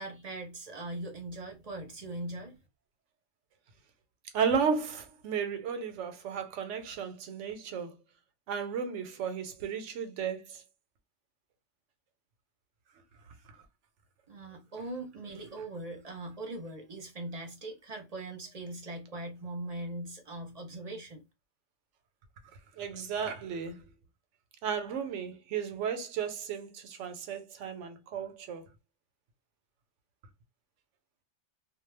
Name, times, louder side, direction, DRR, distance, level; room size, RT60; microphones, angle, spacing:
voice 1, 0.0-2.6 14.3-21.2, right 2 dB, 40° right, 0.6 m, -40 dB
voice 2, 4.3-7.9 8.5-10.6 22.8-23.8 24.6-28.6, right 6 dB, 90° right, 1.0 m, -34 dB
2.3 x 2.1 x 3.2 m
omnidirectional pair, 1.2 m